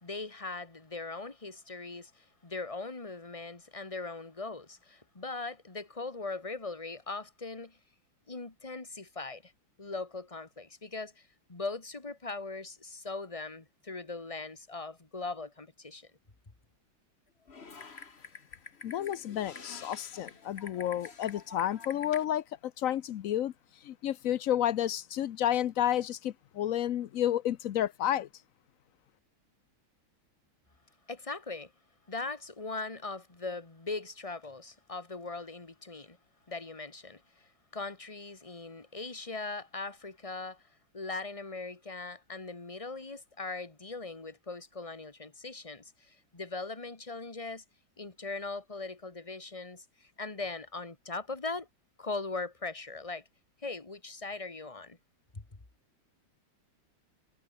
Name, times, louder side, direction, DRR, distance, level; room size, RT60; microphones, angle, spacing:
voice 1, 0.0-7.8 8.3-9.5 9.8-16.1 31.1-31.7 32.1-36.2 36.5-40.6 40.9-47.6 48.0-51.7 52.0-53.2 53.6-55.0 55.3-55.4, left 3 dB, 15° left, 1.8 m, -40 dB
Typing, 17.5-22.2, left 5 dB, 30° left, 1.8 m, -47 dB
voice 2, 18.8-23.5 23.8-28.3, left 11 dB, 90° left, 0.7 m, -31 dB
omnidirectional pair, 2.3 m